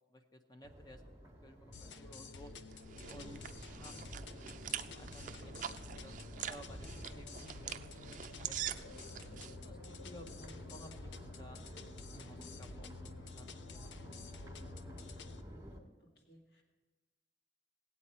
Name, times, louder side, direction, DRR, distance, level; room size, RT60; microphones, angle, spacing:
voice 1, 0.1-1.0 1.4-2.5 3.1-3.4 3.7-4.0 4.4-7.7 8.0-11.6 12.1-15.4, equal, 20° left, 6 dB, 0.7 m, -57 dB
Crowd, 0.6-15.8, equal, 20° right, 1.5 m, -51 dB
sound 1, 1.7-15.4, left 4 dB, 85° left, 0.6 m, -51 dB
sound 2, 2.4-9.5, right 10 dB, 45° right, 0.4 m, -45 dB
voice 2, 16.3-16.6, left 1 dB, 60° left, 0 dB, 1.9 m, -60 dB
17.0 x 8.3 x 4.3 m, 1.3 s
head